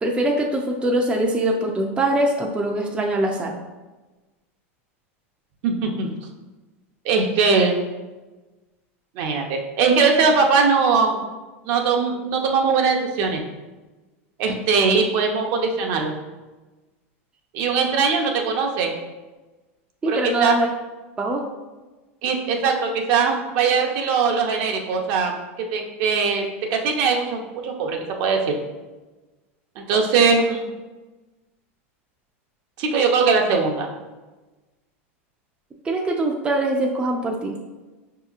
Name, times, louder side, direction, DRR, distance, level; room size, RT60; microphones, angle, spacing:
voice 1, 0.0-3.6 20.0-20.7 21.2-21.4 35.8-37.5, right 1 dB, 15° right, 0 dB, 0.4 m, -22 dB
voice 2, 5.6-6.1 7.0-7.8 9.2-11.2 11.6-13.4 14.4-16.1 17.5-18.9 20.1-20.6 22.2-25.4 25.7-26.4 26.7-28.5 29.8-30.7 32.8-33.9, right 5 dB, 55° right, 2 dB, 0.7 m, -20 dB
5.1 x 2.8 x 2.4 m, 1.2 s
hypercardioid pair, 115°, 7 cm